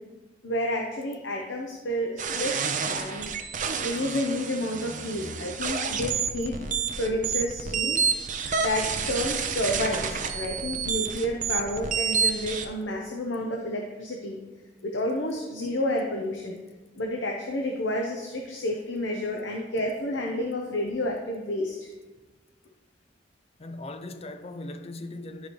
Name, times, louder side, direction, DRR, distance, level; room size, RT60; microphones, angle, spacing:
voice 1, 0.4-2.6 2.8-3.3 3.8-6.6 7.0-8.0 8.6-14.4 14.8-16.6 17.0-21.9, left 1 dB, 80° left, 0.8 m, -30 dB
sound 1, 2.2-12.7, right 6 dB, 45° right, 0.7 m, -29 dB
voice 2, 23.6-25.5, left 2 dB, 35° left, 0.5 m, -39 dB
12.0 x 5.0 x 3.1 m
head